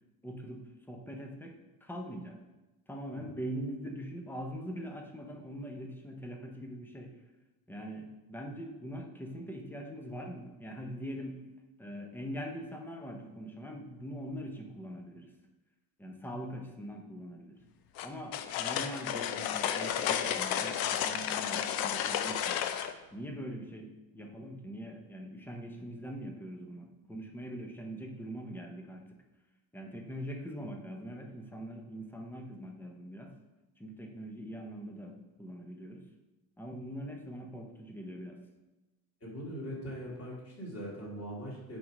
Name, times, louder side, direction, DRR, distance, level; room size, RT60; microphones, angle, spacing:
voice 1, 0.2-1.5 1.8-2.4 2.9-7.1 7.7-11.4 11.8-15.3 16.0-17.6 18.0-22.6 23.1-29.1 29.7-33.3 33.8-36.0 36.6-38.4, equal, 5° left, 2 dB, 0.7 m, -42 dB
sound 1, 18.0-22.9, left 9 dB, 60° left, 0.6 m, -32 dB
voice 2, 39.2-41.8, equal, 35° left, -5 dB, 2.4 m, -41 dB
7.7 x 3.6 x 5.3 m, 1.1 s
cardioid pair, 150°, 42 cm